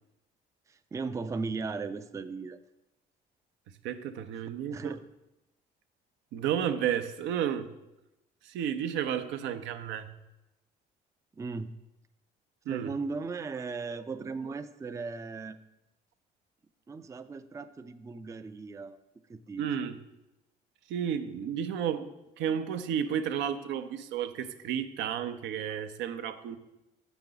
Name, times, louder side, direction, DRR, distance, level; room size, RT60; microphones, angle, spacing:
voice 1, 0.7-2.6 4.7-5.0 11.3-11.7 12.7-15.6 16.9-19.0 19.3-19.7, right 4 dB, 15° right, 10 dB, 0.4 m, -37 dB
voice 2, 3.8-4.9 6.3-7.7 8.5-10.1 12.7-12.9 19.6-20.0 20.9-22.1 22.4-26.6, right 9 dB, 75° right, 9 dB, 0.6 m, -32 dB
6.6 x 5.9 x 3.9 m, 0.93 s
supercardioid pair, 80°, 19 cm